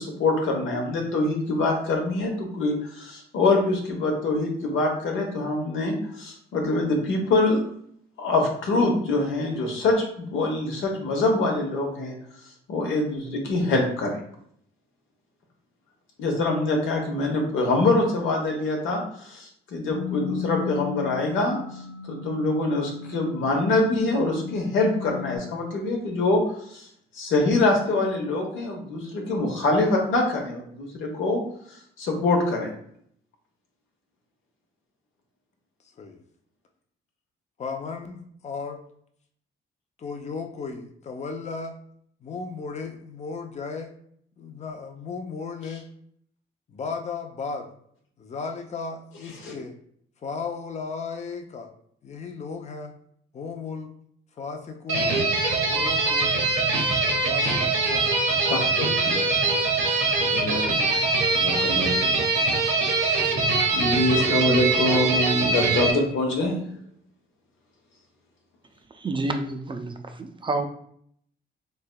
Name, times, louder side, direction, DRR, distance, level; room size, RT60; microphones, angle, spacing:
voice 1, 0.0-7.6 8.2-12.1 12.7-14.2 16.2-21.6 22.1-26.4 26.7-26.9 27.1-31.4 31.7-32.7 49.4-49.5 58.4-59.2 59.9-60.0 60.3-60.6 60.9-61.0 61.4-62.1 63.0-63.3 63.7-66.5, left 2 dB, 80° left, 1 dB, 1.0 m, -24 dB
sound 1, 19.9-25.4, left 10 dB, 5° right, 0.8 m, -36 dB
voice 2, 37.6-38.8 40.0-41.7 42.2-43.9 44.4-45.9 46.7-47.7 48.2-49.8 50.2-51.7 52.0-52.9 53.3-53.9 54.4-55.2 55.6-56.4 57.3-58.1 59.4-60.2, left 4 dB, 35° left, 5 dB, 0.5 m, -35 dB
sound 2, 54.9-65.9, right 3 dB, 65° right, 1.0 m, -23 dB
voice 3, 68.9-70.7, right 2 dB, 25° right, 5 dB, 0.4 m, -29 dB
3.3 x 3.2 x 2.2 m, 0.66 s
cardioid pair, 90°, 20 cm